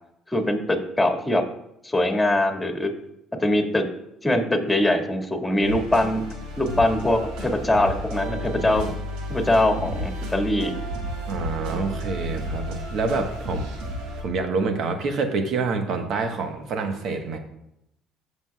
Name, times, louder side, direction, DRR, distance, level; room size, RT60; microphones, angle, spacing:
voice 1, 0.3-1.4 1.8-2.9 3.4-3.9 4.2-6.2 6.6-8.9 9.3-10.8, left 1 dB, 10° left, 3 dB, 1.9 m, -22 dB
sound 1, 5.6-14.2, equal, 80° right, 1.7 m, -32 dB
voice 2, 11.3-13.7 14.2-17.4, right 4 dB, 60° right, 6 dB, 1.2 m, -27 dB
15.0 x 6.2 x 2.3 m, 0.80 s
hypercardioid pair, 65°, 0 cm